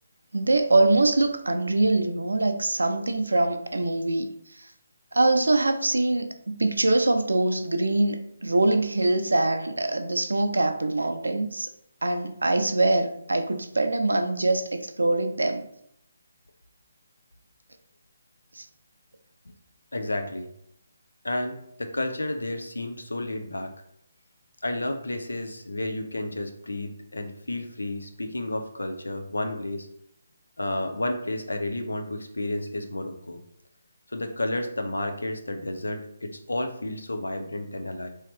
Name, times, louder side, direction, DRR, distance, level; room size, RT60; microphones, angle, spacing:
voice 1, 0.3-4.3 5.1-6.3 6.6-11.7 12.0-15.7 18.5-18.7, right 2 dB, 80° right, 7 dB, 0.5 m, -23 dB
voice 2, 19.9-20.5 21.2-23.7 24.6-29.9 30.6-33.4 34.1-38.1, left 1 dB, 80° left, 6 dB, 0.6 m, -31 dB
3.1 x 2.8 x 3.3 m, 0.73 s
figure-of-eight pair, 145°, 0 cm